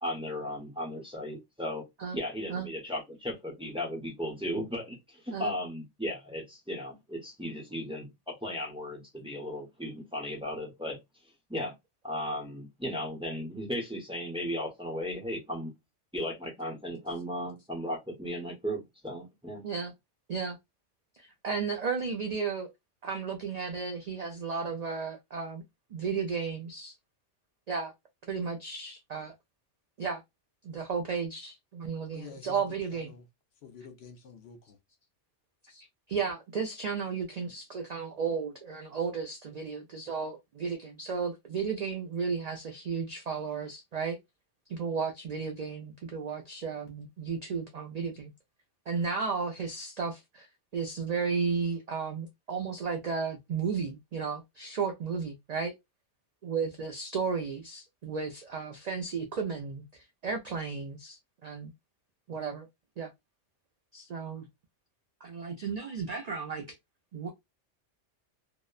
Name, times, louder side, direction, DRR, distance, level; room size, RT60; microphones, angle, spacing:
voice 1, 0.0-1.9 2.1-11.0 11.5-11.7 12.0-15.7 16.1-19.6, equal, 5° right, 0.6 m, -36 dB
voice 2, 21.1-22.7 23.0-25.6 25.9-26.9 27.7-27.9 28.3-29.3 30.0-30.2 30.6-33.1 35.7-44.2 44.7-48.3 48.9-50.5 50.7-55.7 56.4-59.8 60.2-61.7 62.3-62.7 63.0-63.1 63.9-64.5 65.2-66.6 67.1-67.3, right 5 dB, 75° right, 0.3 m, -34 dB
voice 3, 32.1-32.6 32.9-33.2 33.6-34.8, left 6 dB, 65° left, 0.8 m, -48 dB
2.8 x 2.0 x 2.3 m
omnidirectional pair, 1.2 m